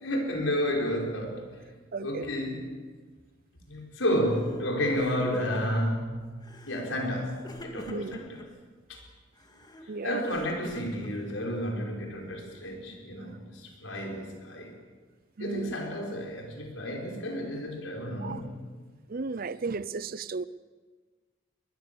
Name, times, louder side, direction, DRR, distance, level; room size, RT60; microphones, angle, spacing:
voice 1, 0.0-1.5 2.0-2.7 3.7-6.3 6.7-8.4 8.9-9.0 10.0-14.8 15.4-18.5, equal, 85° left, 1 dB, 5.2 m, -31 dB
voice 2, 1.9-2.3 7.9-8.2 9.9-10.2 15.4-15.7 18.2-18.4 19.1-20.4, right 4 dB, 50° right, 17 dB, 0.6 m, -34 dB
Crying sobbing, 4.3-4.6 4.9-5.9 6.4-6.9 7.4-8.5 9.4-11.6, equal, 20° left, 2.3 m, -44 dB
22.0 x 21.0 x 7.0 m, 1.4 s
head